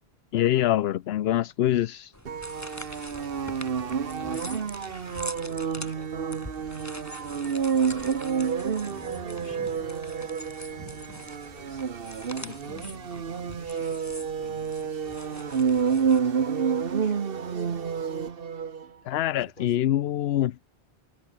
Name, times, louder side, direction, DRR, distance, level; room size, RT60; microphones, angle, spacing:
voice 1, 0.3-2.1 19.0-20.6, left 12 dB, 75° left, 0.8 m, -24 dB
sound 1, 2.1-16.2, left 1 dB, 15° left, 4.1 m, -44 dB
sound 2, 2.3-18.9, right 6 dB, 60° right, 1.3 m, -29 dB
voice 2, 3.1-6.7 7.1-8.8 9.2-18.3 19.4-20.2, left 1 dB, 50° left, 7.6 m, -52 dB
omnidirectional pair, 1.1 m